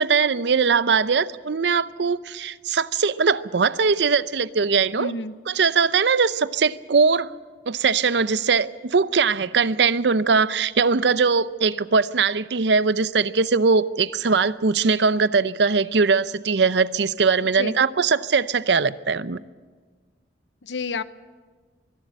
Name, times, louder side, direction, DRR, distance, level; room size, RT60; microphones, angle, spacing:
voice 1, 0.0-5.1 5.5-7.3 7.7-19.4, right 5 dB, 70° right, 0.6 m, -21 dB
voice 2, 5.0-5.3 17.5-17.8 20.6-21.0, left 3 dB, 85° left, 0.8 m, -29 dB
23.5 x 11.5 x 9.9 m
head